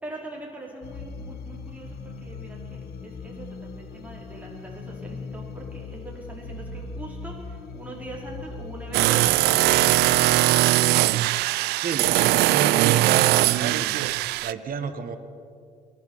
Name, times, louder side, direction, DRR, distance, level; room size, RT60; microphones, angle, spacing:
voice 1, 0.0-9.9, right 1 dB, 10° right, -4 dB, 4.7 m, -41 dB
sound 1, 0.8-10.6, left 4 dB, 65° left, 1.2 m, -39 dB
sound 2, 8.9-14.5, right 18 dB, 70° right, 0.4 m, -20 dB
voice 2, 11.8-14.0 14.4-15.2, right 6 dB, 55° right, 9 dB, 1.6 m, -30 dB
22.5 x 11.0 x 5.7 m, 2.2 s
hypercardioid pair, 50°, 17 cm